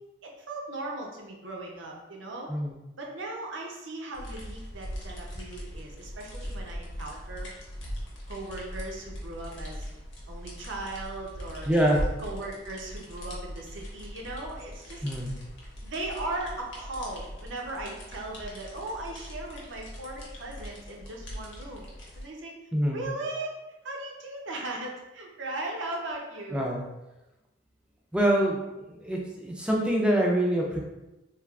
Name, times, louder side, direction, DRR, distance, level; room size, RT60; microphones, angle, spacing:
voice 1, 0.2-2.5 3.0-7.5 8.3-9.9 10.3-11.7 12.2-15.0 15.8-22.5 22.9-23.6 23.8-26.7, right 2 dB, 75° right, 0 dB, 0.6 m, -38 dB
sound 1, 4.1-22.2, equal, 70° left, 0.7 m, -40 dB
voice 2, 11.7-12.0 15.0-15.3 22.7-23.0 26.5-26.8 28.1-30.8, right 1 dB, 5° right, -1 dB, 0.4 m, -25 dB
3.2 x 2.3 x 2.3 m, 1.0 s
head